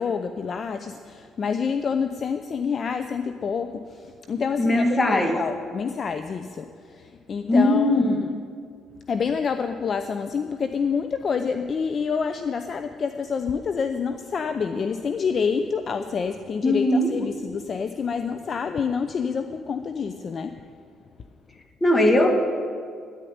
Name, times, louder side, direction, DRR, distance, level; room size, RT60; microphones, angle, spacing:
voice 1, 0.0-8.3 9.1-20.6, left 6 dB, 45° left, 9 dB, 0.6 m, -28 dB
voice 2, 4.6-5.4 7.5-8.2 16.6-17.1 21.8-22.4, left 1 dB, 20° left, 4 dB, 2.0 m, -19 dB
10.0 x 9.9 x 9.5 m, 2.2 s
supercardioid pair, 80°, 0 cm